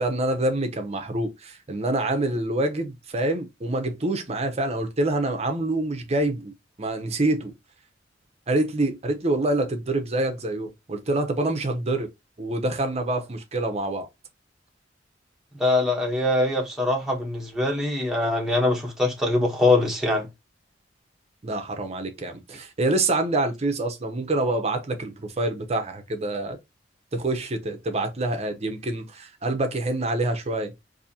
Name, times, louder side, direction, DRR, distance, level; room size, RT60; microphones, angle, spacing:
voice 1, 0.0-6.5 6.8-7.5 8.5-12.1 12.4-14.1 21.4-26.6 27.1-30.7, right 2 dB, 35° right, 0.7 m, -26 dB
voice 2, 15.5-20.3, left 2 dB, ahead, 1.0 m, -23 dB
4.1 x 2.7 x 2.7 m
head